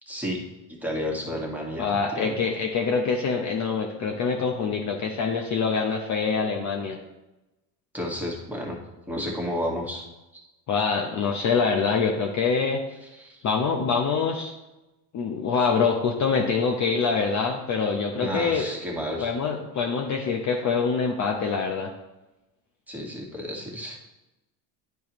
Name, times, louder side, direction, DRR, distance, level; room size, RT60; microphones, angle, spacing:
voice 1, 0.1-0.4 0.7-2.4 7.9-8.8 9.1-10.0 10.3-10.4 13.1-13.5 18.1-19.3 22.9-24.0, left 1 dB, 5° right, -2 dB, 1.7 m, -32 dB
voice 2, 1.8-7.0 10.7-12.8 13.4-14.5 15.1-18.6 19.2-21.9, left 5 dB, 35° left, 2 dB, 0.8 m, -25 dB
10.5 x 4.7 x 3.0 m, 0.99 s
supercardioid pair, 105°, 48 cm